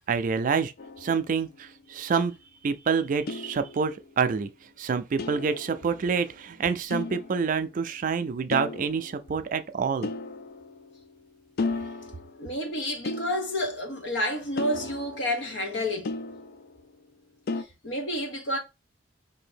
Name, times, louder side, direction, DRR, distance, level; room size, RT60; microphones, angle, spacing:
voice 1, 0.1-0.7 1.0-2.3 2.6-4.5 4.8-10.1, right 5 dB, 45° right, 0.4 m, -27 dB
sound 1, 0.8-1.8 3.3-4.3 5.2-6.4 6.9-7.8 8.5-9.5 10.0-11.3 11.6-12.6 13.0-14.0 14.6-17.0 17.5-17.6, left 3 dB, 55° left, 0.3 m, -36 dB
voice 2, 12.4-16.1 17.8-18.6, left 1 dB, 70° left, 0.9 m, -30 dB
2.7 x 2.6 x 4.3 m
head